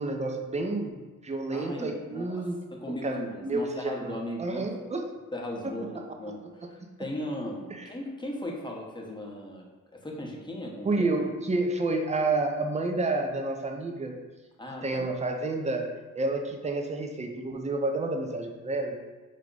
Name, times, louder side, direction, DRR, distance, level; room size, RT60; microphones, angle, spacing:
voice 1, 0.0-4.1 4.4-5.1 5.9-6.0 7.7-7.9 10.8-14.2 14.8-15.9 16.1-19.0, right 2 dB, 20° right, 3 dB, 0.5 m, -30 dB
voice 2, 1.5-2.4 2.7-4.7 5.3-6.4 6.7-9.7 9.9-11.0 14.6-15.1, left 1 dB, 15° left, -1 dB, 0.9 m, -37 dB
4.8 x 2.2 x 3.8 m, 1.3 s
cardioid pair, 80°, 33 cm